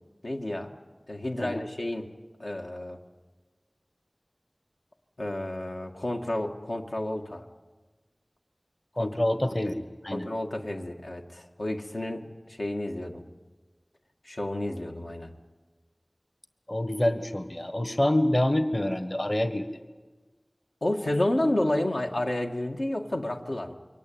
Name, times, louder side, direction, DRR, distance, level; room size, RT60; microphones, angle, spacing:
voice 1, 0.2-0.7 1.1-2.1 2.4-3.0 5.2-7.4 9.0-9.8 10.1-13.2 14.2-15.3 20.8-23.7, left 1 dB, 85° left, 2 dB, 2.0 m, -31 dB
voice 2, 8.9-9.7 10.0-10.3 16.7-19.6, left 1 dB, 40° left, 8 dB, 1.4 m, -26 dB
28.0 x 23.5 x 8.8 m, 1.3 s
wide cardioid pair, 45°, 0 cm